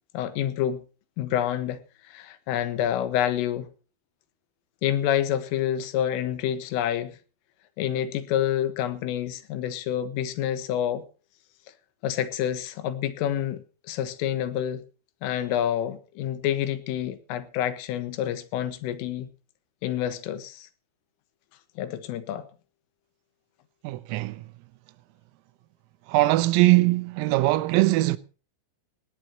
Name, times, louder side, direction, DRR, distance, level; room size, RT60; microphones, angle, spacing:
voice 1, 0.1-0.8 1.2-3.7 4.8-7.2 7.8-11.0 12.0-14.8 15.2-19.3 19.8-20.7 21.8-22.5, left 11 dB, 80° left, 3.8 m, -28 dB
voice 2, 23.8-24.4 26.1-28.2, right 19 dB, 85° right, 3.6 m, -21 dB
18.5 x 17.0 x 2.9 m
omnidirectional pair, 6.0 m